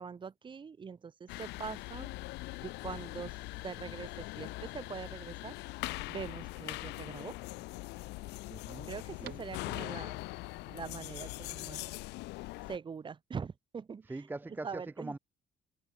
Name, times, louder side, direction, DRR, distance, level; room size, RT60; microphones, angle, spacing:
voice 1, 0.0-2.1 2.6-3.4 3.6-5.5 6.1-7.3 8.9-10.2 10.7-11.8 12.7-14.1 14.6-15.2, right 6 dB, 30° right, 1.0 m, -43 dB
sound 1, 1.3-12.8, left 21 dB, 85° left, 0.6 m, -42 dB
sound 2, 1.6-10.1, right 15 dB, 75° right, 8.0 m, -61 dB
voice 2, 8.5-8.9 9.2-9.4 14.0-15.2, right 2 dB, 10° right, 0.6 m, -42 dB
cardioid pair, 110°, 17 cm